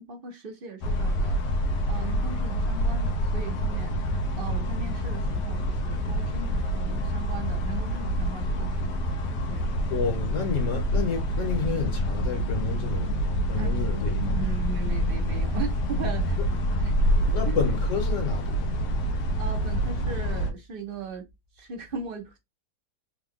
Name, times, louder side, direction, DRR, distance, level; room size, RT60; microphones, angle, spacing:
voice 1, 0.0-8.9 9.5-9.6 13.6-16.4 16.7-17.0 17.2-17.6 19.1-21.3 21.6-22.4, right 4 dB, 50° right, 0.7 m, -38 dB
sound 1, 0.8-20.5, equal, 85° left, 1.3 m, -27 dB
voice 2, 9.5-14.5 17.3-19.0, left 5 dB, 55° left, 1.2 m, -31 dB
3.7 x 2.2 x 3.5 m
omnidirectional pair, 1.8 m